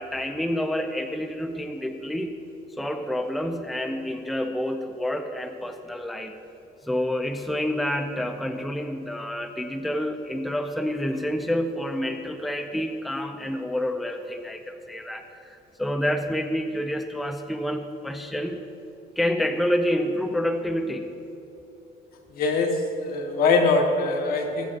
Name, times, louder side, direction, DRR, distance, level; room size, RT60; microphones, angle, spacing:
voice 1, 0.0-2.4 2.8-6.4 6.8-18.6 19.2-21.1, equal, ahead, 6 dB, 0.5 m, -28 dB
voice 2, 22.3-24.7, left 3 dB, 60° left, 3 dB, 1.3 m, -22 dB
20.5 x 7.8 x 2.6 m, 2.9 s
cardioid pair, 110°, 17 cm